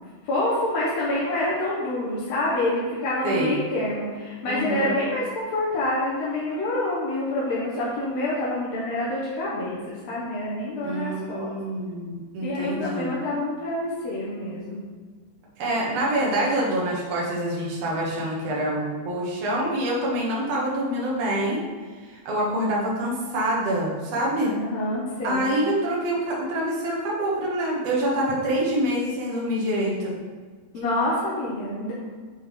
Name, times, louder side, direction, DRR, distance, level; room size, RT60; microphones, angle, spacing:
voice 1, 0.2-11.5 12.4-14.8 20.1-20.3 24.4-25.5 28.1-28.2 30.7-31.9, left 1 dB, 65° left, -7 dB, 1.7 m, -27 dB
voice 2, 3.2-3.5 4.5-4.9 10.8-13.1 15.6-21.6 22.0-24.5 25.2-30.2, right 1 dB, 55° right, -4 dB, 2.0 m, -26 dB
8.2 x 4.2 x 3.6 m, 1.5 s
omnidirectional pair, 4.2 m